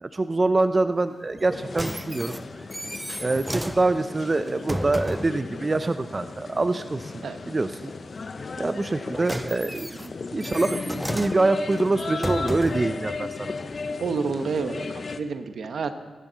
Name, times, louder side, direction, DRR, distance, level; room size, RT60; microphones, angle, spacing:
voice 1, 0.0-2.3 3.2-7.9 8.6-13.5, right 2 dB, 35° right, 10 dB, 0.7 m, -25 dB
sound 1, 1.4-5.4 8.8-13.0 13.7-13.8, right 1 dB, 10° right, 0.4 m, -33 dB
sound 2, 1.5-15.2, left 4 dB, 55° left, 1.0 m, -36 dB
voice 2, 14.0-15.9, right 4 dB, 70° right, 9 dB, 1.1 m, -29 dB
24.5 x 11.5 x 4.0 m, 1.4 s
supercardioid pair, 40°, 0 cm